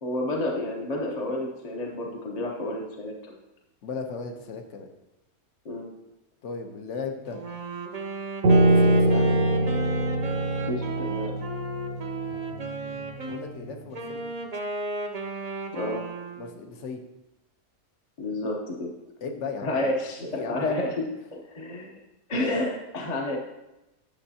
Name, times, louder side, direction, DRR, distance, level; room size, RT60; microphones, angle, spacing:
voice 1, 0.0-3.4 5.6-5.9 10.7-11.4 15.7-16.0 18.2-18.9 19.6-20.2 20.5-21.0 21.3-21.9 22.3-23.4, left 1 dB, 35° left, -1 dB, 0.8 m, -30 dB
voice 2, 3.8-4.9 6.4-7.5 8.7-9.4 13.2-14.3 16.4-17.0 19.2-19.9 20.3-20.8, left 4 dB, 55° left, 4 dB, 1.1 m, -36 dB
Wind instrument woodwind instrument, 7.3-13.4 13.9-16.6, right 3 dB, 35° right, 0.6 m, -35 dB
Piano, 8.4-13.7, right 1 dB, 65° right, 1.0 m, -24 dB
10.5 x 6.4 x 2.8 m, 0.97 s
omnidirectional pair, 1.6 m